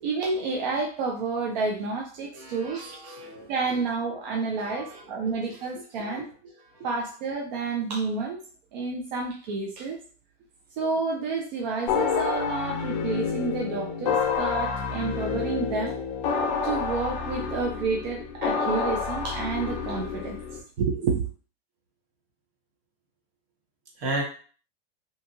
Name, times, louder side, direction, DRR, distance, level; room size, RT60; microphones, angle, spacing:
voice 1, 0.0-2.8 3.5-6.3 6.8-8.4 8.7-10.0 10.8-15.9 16.6-20.4 20.8-21.2, right 4 dB, 40° right, 0 dB, 0.4 m, -29 dB
voice 2, 2.3-3.7 4.6-5.6 5.9-6.3 6.7-6.9 24.0-24.2, right 1 dB, 60° right, 0 dB, 1.2 m, -36 dB
sound 1, 11.9-20.6, left 5 dB, 35° left, 0.4 m, -28 dB
2.8 x 2.3 x 2.5 m, 0.41 s
supercardioid pair, 155°, 35 cm